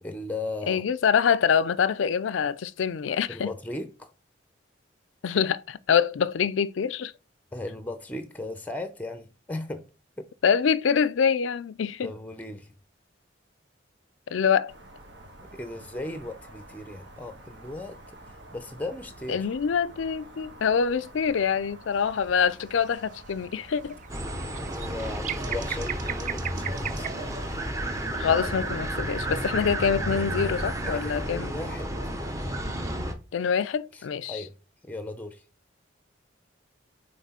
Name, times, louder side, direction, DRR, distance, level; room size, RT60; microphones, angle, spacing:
voice 1, 0.0-0.8 3.3-4.1 7.5-9.8 10.2-10.3 12.0-12.7 15.5-18.0 18.5-19.5 24.6-27.1 30.8-31.9 33.9-34.6 34.8-35.4, left 2 dB, 10° left, 0.6 m, -37 dB
voice 2, 0.7-3.5 5.2-7.1 10.4-12.1 14.3-14.7 19.3-24.0 28.1-31.5 33.3-34.4, left 7 dB, 90° left, 0.4 m, -25 dB
sound 1, 14.7-31.2, right 1 dB, 65° right, 1.4 m, -48 dB
sound 2, 22.0-22.3 22.7-27.5, right 9 dB, 40° right, 0.3 m, -37 dB
sound 3, 24.1-33.1, right 1 dB, 15° right, 0.8 m, -32 dB
5.9 x 3.8 x 4.2 m
head